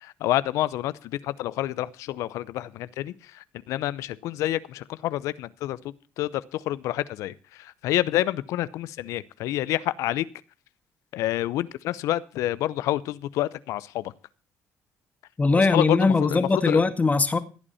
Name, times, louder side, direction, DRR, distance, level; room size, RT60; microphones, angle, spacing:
voice 1, 0.0-5.8 6.2-10.3 11.1-14.1 15.7-16.8, left 14 dB, 75° left, 18 dB, 0.7 m, -28 dB
voice 2, 15.4-17.4, left 3 dB, 30° left, 10 dB, 1.9 m, -21 dB
16.0 x 8.7 x 5.7 m, 0.36 s
hypercardioid pair, 60°, 5 cm